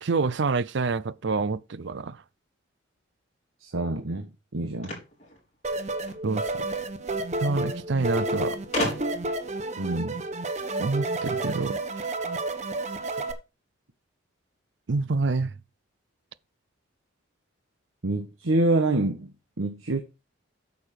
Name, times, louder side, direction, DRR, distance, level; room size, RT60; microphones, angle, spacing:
voice 1, 0.0-2.2 6.2-6.4 7.4-8.6 10.8-11.8 14.9-15.5, right 4 dB, 60° right, 0.5 m, -27 dB
voice 2, 3.6-5.0 9.8-10.2 18.0-20.0, right 2 dB, 90° right, 1.3 m, -27 dB
sound 1, 4.8-6.2 7.3-7.4 7.7-7.8 8.7-9.4, left 1 dB, 35° left, 4.1 m, -32 dB
sound 2, 5.6-13.3, right 2 dB, 35° right, 1.0 m, -30 dB
8.8 x 6.7 x 4.8 m
head